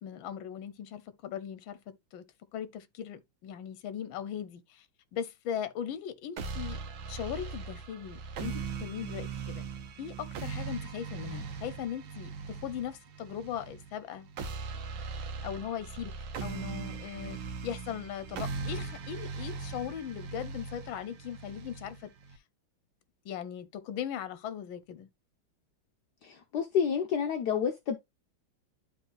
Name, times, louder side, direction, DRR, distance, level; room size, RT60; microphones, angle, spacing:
voice 1, 0.0-2.2 2.5-4.8 5.1-6.8 7.1-9.7 10.0-14.3 15.4-16.1 16.4-22.1 23.2-25.1, left 9 dB, 80° left, 1.5 m, -39 dB
sound 1, 6.4-22.4, right 5 dB, 85° right, 1.7 m, -40 dB
voice 2, 26.2-28.0, left 7 dB, 65° left, 1.2 m, -29 dB
12.0 x 3.9 x 2.3 m
omnidirectional pair, 2.2 m